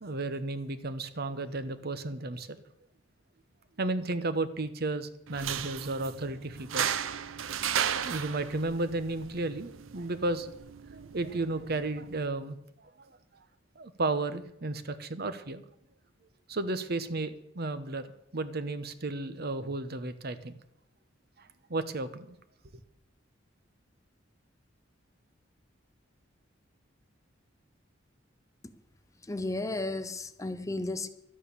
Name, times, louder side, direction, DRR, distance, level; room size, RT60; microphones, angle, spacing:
voice 1, 0.0-2.6 3.8-7.0 8.0-10.5 10.9-12.6 12.8-13.2 13.8-15.6 16.5-18.1 18.3-20.6 21.4-22.3, right 2 dB, 55° right, 1.0 m, -33 dB
sound 1, 5.3-12.3, right 8 dB, 85° right, 0.7 m, -35 dB
voice 2, 29.3-31.1, left 2 dB, 15° left, 0.6 m, -33 dB
12.5 x 9.8 x 6.8 m
head